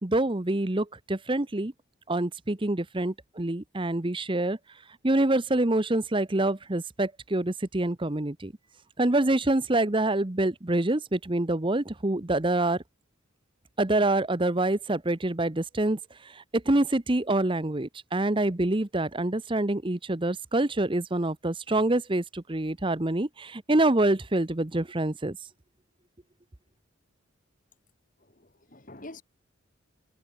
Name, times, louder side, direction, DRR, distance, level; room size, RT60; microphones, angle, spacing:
voice 1, 0.0-1.7 2.1-4.6 5.0-8.5 9.0-12.8 13.8-16.0 16.3-25.4, right 2 dB, 25° right, 0.9 m, -26 dB
voice 2, 28.2-29.2, left 2 dB, 40° left, 2.9 m, -46 dB
head